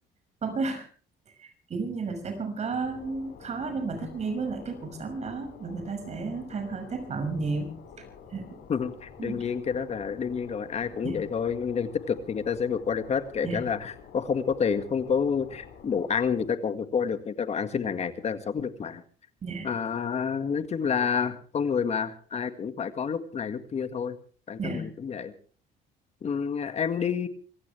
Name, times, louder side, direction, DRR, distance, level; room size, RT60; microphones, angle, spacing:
voice 1, 0.4-0.9 1.4-7.7 8.3-8.6 9.2-9.4 11.0-11.2 13.4-13.6 19.4-19.7 24.6-24.9, right 4 dB, 40° right, 7 dB, 6.2 m, -32 dB
sound 1, 2.8-16.5, left 6 dB, 70° left, 6.2 m, -49 dB
voice 2, 8.7-19.0 19.6-24.2 24.5-25.3 26.2-27.3, left 6 dB, 40° left, 10 dB, 1.9 m, -29 dB
25.0 x 16.0 x 3.4 m, 0.41 s
cardioid pair, 110°, 17 cm